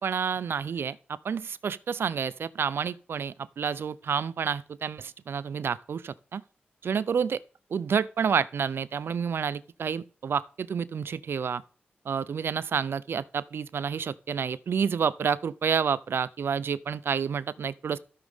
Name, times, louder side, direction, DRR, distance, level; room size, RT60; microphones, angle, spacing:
voice 1, 0.0-6.4 6.8-7.4 7.7-11.6 12.1-18.0, right 6 dB, 75° right, 0.5 m, -29 dB
13.0 x 7.4 x 3.6 m
cardioid pair, 55°, 4 cm